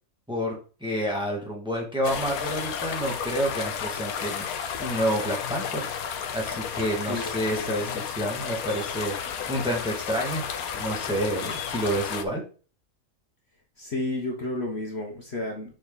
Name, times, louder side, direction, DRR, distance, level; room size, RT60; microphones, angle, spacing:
voice 1, 0.3-5.8 6.3-10.5 10.7-12.4, equal, 5° right, -2 dB, 2.0 m, -29 dB
sound 1, 2.0-12.2, left 7 dB, 85° left, 1.3 m, -32 dB
voice 2, 7.1-8.0 13.8-15.7, left 2 dB, 50° left, 1 dB, 1.4 m, -32 dB
7.0 x 4.8 x 4.0 m, 0.37 s
omnidirectional pair, 1.5 m